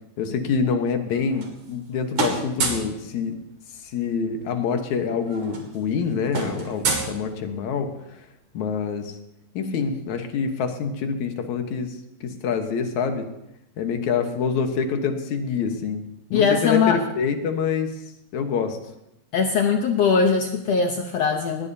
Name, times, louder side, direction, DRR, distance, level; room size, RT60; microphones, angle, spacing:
voice 1, 0.2-3.3 3.9-7.9 8.5-9.2 9.5-13.3 13.8-16.0 16.3-17.9 18.3-18.8, left 5 dB, 65° left, 6 dB, 2.2 m, -26 dB
sound 1, 1.1-1.9 2.1-3.0 4.3-4.4 4.7-4.9 5.2-7.8, right 4 dB, 50° right, 3.3 m, -29 dB
voice 2, 16.3-17.0 19.3-21.7, left 5 dB, 90° left, 3 dB, 1.4 m, -20 dB
20.0 x 17.5 x 2.8 m, 0.85 s
omnidirectional pair, 4.2 m